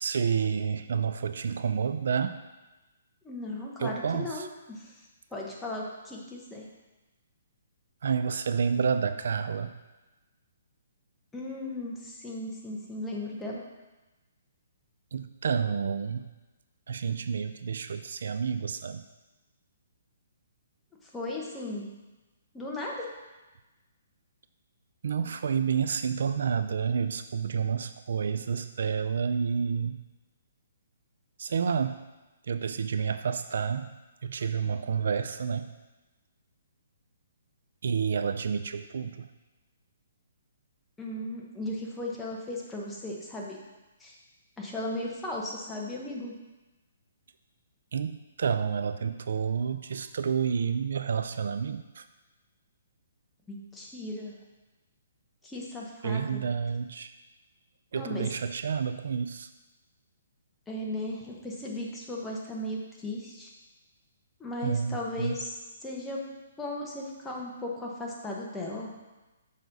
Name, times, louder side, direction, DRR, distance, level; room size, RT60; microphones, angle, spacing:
voice 1, 0.0-2.4 3.8-4.5 8.0-9.7 15.1-16.3 16.9-19.0 25.0-30.0 31.4-32.0 32.5-33.9 34.2-35.7 37.8-39.3 47.9-52.0 56.0-57.1 57.9-59.5 64.6-65.3, right 6 dB, 65° right, 10 dB, 0.3 m, -29 dB
voice 2, 3.2-5.0 5.3-6.7 11.3-13.6 21.0-21.9 22.5-23.1 41.0-43.6 44.0-44.1 44.6-46.3 53.5-54.3 55.4-56.4 57.9-58.3 60.7-63.5 64.4-65.5 65.8-66.2 66.6-68.9, left 1 dB, 5° left, -3 dB, 0.9 m, -36 dB
6.6 x 5.1 x 4.0 m, 1.1 s
hypercardioid pair, 170°, 0 cm